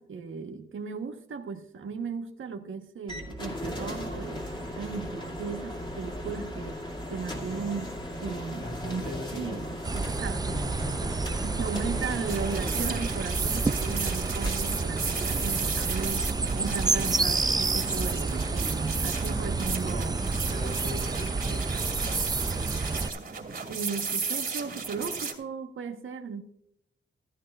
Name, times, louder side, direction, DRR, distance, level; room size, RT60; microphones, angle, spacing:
voice 1, 0.0-6.8 7.1-7.9 8.2-9.0 9.3-10.8 11.3-20.1 23.7-26.4, right 5 dB, 90° right, 1.2 m, -36 dB
sound 1, 3.1-20.9, equal, 25° left, 2.3 m, -39 dB
voice 2, 8.6-9.6 10.2-11.1 11.4-11.8 19.7-20.2 20.5-22.9, left 1 dB, 45° left, 5.7 m, -41 dB
sound 2, 9.8-23.1, right 3 dB, 20° right, 0.4 m, -30 dB
sound 3, 12.3-25.3, right 5 dB, 50° right, 2.4 m, -34 dB
14.5 x 13.0 x 2.4 m
wide cardioid pair, 115°, 20 cm